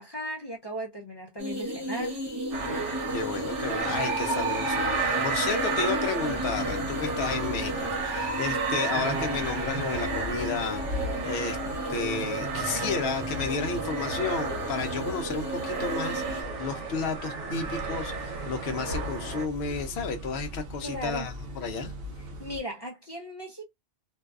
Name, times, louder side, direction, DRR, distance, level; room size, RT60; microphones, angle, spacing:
voice 1, 0.0-2.2 20.8-21.3 22.4-23.6, equal, 40° left, 0.3 m, -36 dB
sound 1, 1.4-16.4, equal, 25° right, 0.8 m, -35 dB
sound 2, 2.5-19.5, right 4 dB, 85° right, 1.1 m, -32 dB
voice 2, 3.1-11.6 11.9-21.9, left 5 dB, 65° left, 0.7 m, -32 dB
sound 3, 17.6-22.6, equal, 60° right, 0.8 m, -39 dB
2.6 x 2.2 x 2.3 m
omnidirectional pair, 1.2 m